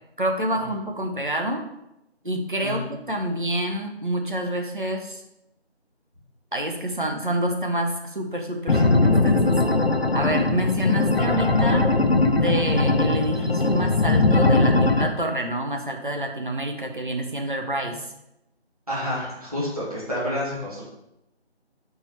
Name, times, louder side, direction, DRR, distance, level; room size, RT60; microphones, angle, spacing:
voice 1, 0.2-1.7 2.2-5.2 6.5-9.6 10.1-11.9 12.3-18.1, right 1 dB, 50° right, 3 dB, 0.8 m, -27 dB
voice 2, 2.6-2.9 8.7-8.9 18.9-20.8, left 1 dB, 35° right, -7 dB, 2.0 m, -29 dB
sound 1, 8.7-15.1, left 2 dB, 60° left, 0.7 m, -20 dB
4.7 x 4.6 x 4.3 m, 0.87 s
figure-of-eight pair, 180°, 33 cm